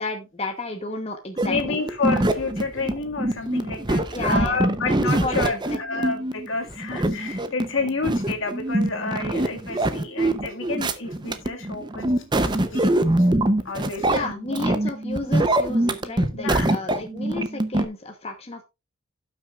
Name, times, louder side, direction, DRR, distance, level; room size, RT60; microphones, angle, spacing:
voice 1, 0.0-1.8 4.1-5.3 5.7-6.0 14.1-18.6, left 2 dB, 30° left, 4 dB, 0.9 m, -32 dB
sound 1, 1.4-17.9, right 1 dB, 20° right, 0.6 m, -24 dB
voice 2, 1.5-14.3 16.3-16.7, left 4 dB, 70° left, 4 dB, 1.8 m, -30 dB
sound 2, 1.7-6.9, equal, 80° right, 2.7 m, -47 dB
16.5 x 6.1 x 2.4 m, 0.24 s
head